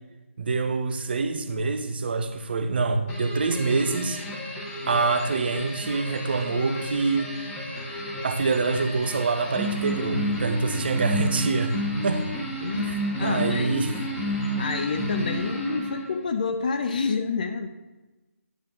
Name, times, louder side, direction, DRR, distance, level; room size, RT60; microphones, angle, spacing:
voice 1, 0.4-4.2 4.8-7.3 8.2-11.8 12.0-12.2 12.8-13.9, right 4 dB, 45° right, 8 dB, 0.8 m, -25 dB
sound 1, 3.1-16.2, equal, 10° left, 1.3 m, -31 dB
voice 2, 12.6-13.9 14.4-17.7, left 5 dB, 35° left, 7 dB, 0.5 m, -29 dB
10.0 x 3.5 x 6.7 m, 1.1 s
figure-of-eight pair, 155°, 8 cm